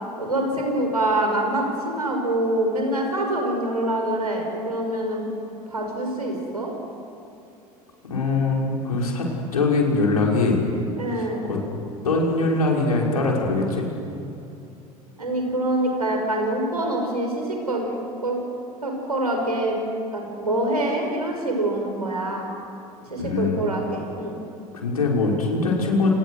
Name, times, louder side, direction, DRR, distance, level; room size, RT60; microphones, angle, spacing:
voice 1, 0.2-5.3 5.7-6.7 11.0-11.4 15.2-18.4 18.8-19.8 20.1-22.5 23.1-24.4, right 1 dB, 85° right, 2 dB, 5.7 m, -25 dB
voice 2, 8.1-9.3 9.5-10.6 11.1-11.6 12.0-13.9 23.2-23.6 24.7-26.1, left 3 dB, 80° left, -2 dB, 5.6 m, -22 dB
29.5 x 28.5 x 6.5 m, 2.8 s
figure-of-eight pair, 70°, 19 cm